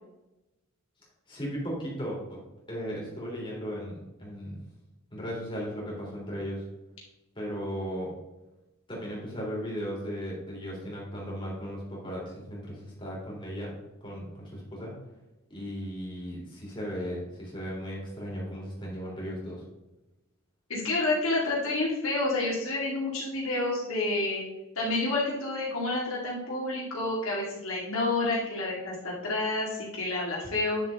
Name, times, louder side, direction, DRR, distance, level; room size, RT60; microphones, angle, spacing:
voice 1, 1.3-2.4 2.7-4.6 5.1-6.6 7.4-8.1 8.9-13.7 14.0-14.9 15.5-19.6, equal, 25° left, -4 dB, 3.5 m, -36 dB
voice 2, 20.7-24.4 24.8-30.8, left 2 dB, 80° left, -5 dB, 2.5 m, -29 dB
9.8 x 7.0 x 3.8 m, 1.0 s
head